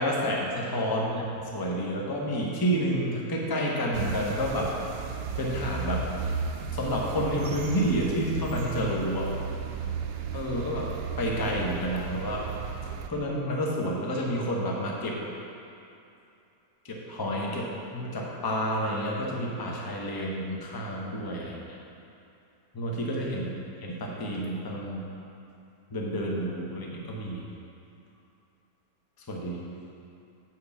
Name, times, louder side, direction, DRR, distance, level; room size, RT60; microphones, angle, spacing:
voice 1, 0.0-4.7 5.4-6.1 6.7-9.3 10.3-12.5 13.1-15.2 16.8-21.8 22.7-23.5 23.8-25.1 25.9-27.4 29.3-29.7, equal, 20° left, -2 dB, 0.8 m, -29 dB
sound 1, 3.9-13.1, right 5 dB, 70° right, 1.0 m, -34 dB
7.7 x 4.7 x 7.1 m, 2.7 s
omnidirectional pair, 1.8 m